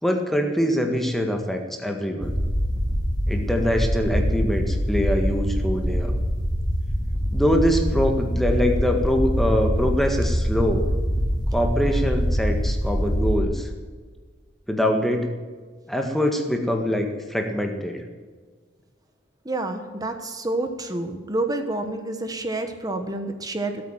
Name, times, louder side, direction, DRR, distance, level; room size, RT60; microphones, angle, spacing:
voice 1, 0.0-2.3 3.3-6.1 7.3-10.9 11.5-13.7 14.7-15.3 15.9-18.0, equal, ahead, 3 dB, 1.7 m, -24 dB
sound 1, 2.2-13.4, equal, 20° left, 3.0 m, -24 dB
voice 2, 19.4-23.8, right 2 dB, 20° right, 6 dB, 1.3 m, -28 dB
17.5 x 8.9 x 9.0 m, 1.5 s
head